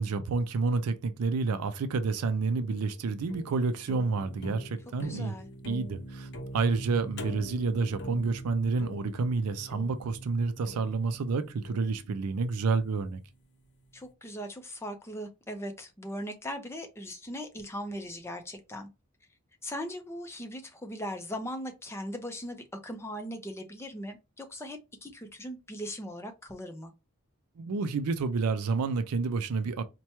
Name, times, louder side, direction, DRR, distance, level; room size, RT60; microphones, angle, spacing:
voice 1, 0.0-5.4 5.6-13.2 27.6-29.8, right 4 dB, 85° right, 0.4 m, -29 dB
sound 1, 2.1-13.3, equal, 50° left, 0.7 m, -44 dB
voice 2, 5.0-5.5 13.9-18.9 19.6-26.9, equal, 10° left, 0.5 m, -39 dB
4.3 x 2.2 x 2.9 m
head